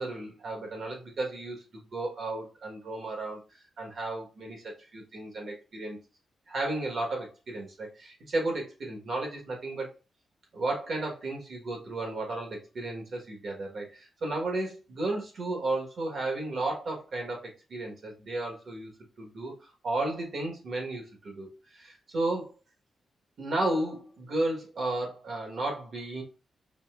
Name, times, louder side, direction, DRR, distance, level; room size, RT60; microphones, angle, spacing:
voice 1, 0.0-3.4 3.8-6.0 6.5-9.9 10.5-18.9 19.2-22.5 23.4-26.2, right 2 dB, 45° right, 0 dB, 1.2 m, -33 dB
5.1 x 2.7 x 2.4 m, 0.33 s
wide cardioid pair, 165°, 0 cm